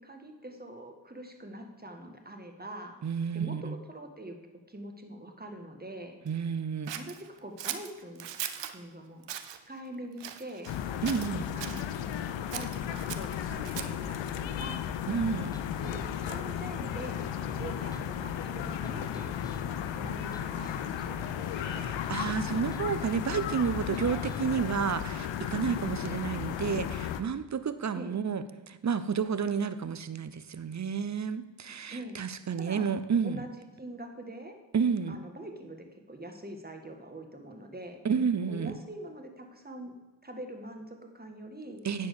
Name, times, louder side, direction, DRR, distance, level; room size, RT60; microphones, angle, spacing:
voice 1, 0.0-3.0 3.3-4.4 4.7-6.2 6.9-8.3 8.7-10.7 11.5-11.9 12.5-14.9 15.3-17.3 17.6-19.6 20.0-21.9 27.9-28.1 31.9-32.2 32.6-32.9 33.2-33.5 33.8-34.6 35.1-38.0 38.5-39.9 40.2-41.8, right 1 dB, 20° right, 4 dB, 1.7 m, -44 dB
voice 2, 3.0-3.8 6.3-6.9 11.0-11.5 15.1-15.5 21.6-33.4 34.7-35.2 38.0-38.7 41.8-42.1, right 6 dB, 40° right, 13 dB, 0.8 m, -31 dB
Scissors, 6.9-8.8 9.2-9.6 10.2-10.8 11.0-11.8 12.5-14.1, right 10 dB, 75° right, 0.7 m, -39 dB
sound 1, 10.7-27.2, left 9 dB, 80° left, 0.7 m, -35 dB
sound 2, 15.5-24.7, left 1 dB, 10° left, 1.0 m, -46 dB
10.0 x 4.6 x 6.7 m, 1.2 s
supercardioid pair, 45°, 44 cm